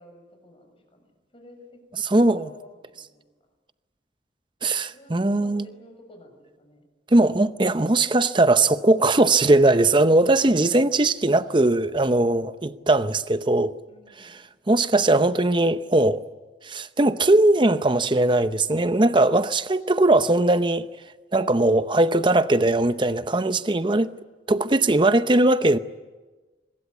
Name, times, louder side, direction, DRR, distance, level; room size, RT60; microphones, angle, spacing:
voice 1, 0.0-1.8 2.1-3.3 4.9-6.8 13.9-14.5, left 1 dB, 30° left, 6.2 m, -50 dB
voice 2, 2.1-2.5 4.6-5.7 7.1-13.7 14.2-14.4 14.7-16.2 16.6-20.9 21.3-24.1 24.5-25.8, right 2 dB, 25° right, 0.7 m, -20 dB
24.5 x 21.5 x 8.4 m
head